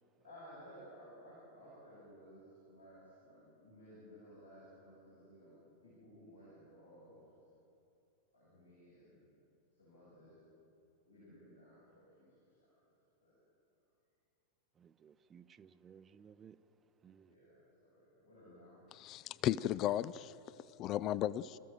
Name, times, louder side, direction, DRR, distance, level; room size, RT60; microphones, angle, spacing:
voice 1, 0.2-7.2 8.3-9.2 9.8-10.4 11.0-13.4 17.2-18.8, equal, 85° left, 7.3 m, -58 dB
voice 2, 14.7-17.3, right 7 dB, 25° right, 0.7 m, -60 dB
voice 3, 19.0-20.3 20.8-21.6, left 12 dB, 35° left, 0.4 m, -35 dB
27.0 x 14.5 x 7.6 m
figure-of-eight pair, 90°, 0 cm